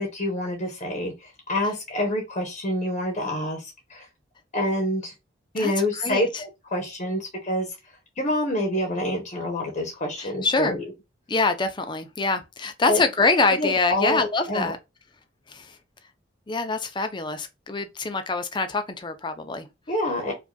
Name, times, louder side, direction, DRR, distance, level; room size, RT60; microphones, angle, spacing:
voice 1, 0.0-4.0 4.5-5.1 5.5-7.7 8.2-10.8 12.9-13.0 13.5-14.7 19.9-20.3, left 1 dB, 40° left, 0.9 m, -27 dB
voice 2, 5.6-6.4 10.2-10.8 11.3-14.8 15.5-15.7 16.5-19.7, left 3 dB, 25° left, 0.5 m, -25 dB
4.9 x 2.4 x 2.2 m
head